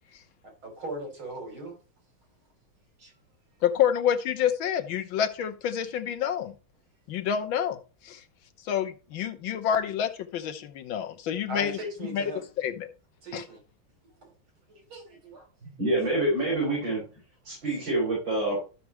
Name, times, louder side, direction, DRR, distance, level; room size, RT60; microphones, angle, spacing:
voice 1, 0.4-1.8 3.0-3.1 11.5-12.4 13.2-13.6 14.8-15.5, right 1 dB, 75° right, 4.1 m, -38 dB
voice 2, 3.6-6.5 7.1-7.8 8.0-8.2 8.7-11.8 12.1-12.3 12.6-12.9 13.3-13.4, left 9 dB, 75° left, 1.6 m, -28 dB
voice 3, 15.6-17.0 17.4-18.6, right 2 dB, 60° right, 6.9 m, -27 dB
13.5 x 5.9 x 3.1 m
omnidirectional pair, 2.3 m